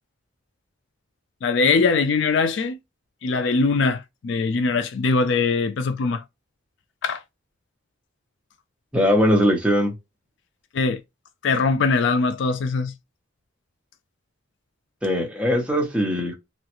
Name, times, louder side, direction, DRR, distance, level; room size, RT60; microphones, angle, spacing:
voice 1, 1.4-2.8 3.2-6.2 7.0-7.2 10.7-11.0 11.4-12.9, left 4 dB, 55° left, 0.3 m, -21 dB
voice 2, 8.9-9.9 15.0-16.3, equal, 5° right, 0.8 m, -20 dB
3.1 x 2.3 x 2.9 m
head